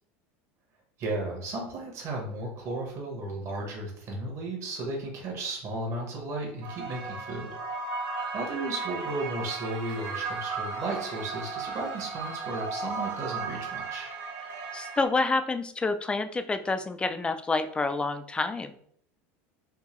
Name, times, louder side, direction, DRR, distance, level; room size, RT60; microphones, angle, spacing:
voice 1, 1.0-7.5 8.3-14.1, right 2 dB, 40° right, 0 dB, 1.1 m, -34 dB
sound 1, 6.6-15.1, right 4 dB, 70° right, 1.2 m, -35 dB
voice 2, 14.7-18.8, left 3 dB, 15° left, 10 dB, 0.3 m, -28 dB
3.6 x 2.8 x 3.1 m, 0.63 s
supercardioid pair, 120°, 7 cm